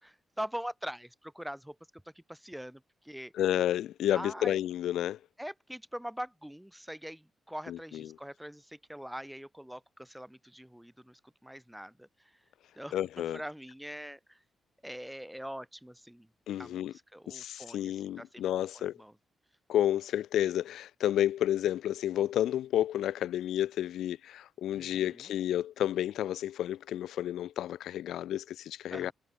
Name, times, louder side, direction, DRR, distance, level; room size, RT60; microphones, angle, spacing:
voice 1, 0.0-1.8 2.2-3.3 4.1-4.6 5.4-12.4 12.8-14.4 14.8-16.3 16.6-18.4 18.7-19.1 24.7-25.3 28.9-29.1, equal, ahead, 3.6 m, -43 dB
voice 2, 3.3-5.2 7.7-8.1 12.9-13.4 16.5-16.9 17.3-19.0 19.7-29.1, left 12 dB, 90° left, 0.4 m, -31 dB
wide cardioid pair, 165°, 0 cm